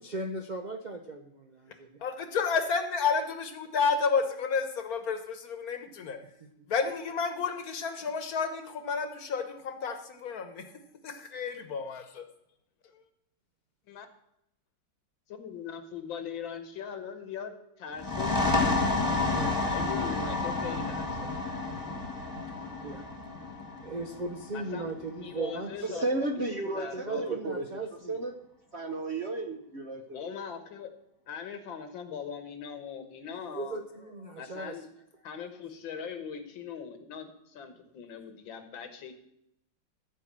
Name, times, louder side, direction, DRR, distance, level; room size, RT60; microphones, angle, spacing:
voice 1, 0.0-2.0 6.4-6.5 22.8-23.1 23.8-26.0 26.9-28.2 33.4-34.8, right 2 dB, 85° right, 4 dB, 0.4 m, -37 dB
voice 2, 2.0-6.2 6.7-10.6 11.0-12.2, left 5 dB, 55° left, 8 dB, 1.5 m, -31 dB
voice 3, 15.3-21.3 21.9-22.1 24.5-26.1 26.6-27.6 30.1-30.9 31.3-33.8 34.4-34.8 35.2-39.1, left 7 dB, 80° left, 8 dB, 2.0 m, -41 dB
sound 1, 17.9-25.3, left 3 dB, 10° left, 1.5 m, -30 dB
voice 4, 25.9-27.6 28.1-28.3 28.7-30.3, right 2 dB, 45° right, 4 dB, 1.0 m, -33 dB
13.5 x 4.7 x 7.4 m, 0.79 s
omnidirectional pair, 2.1 m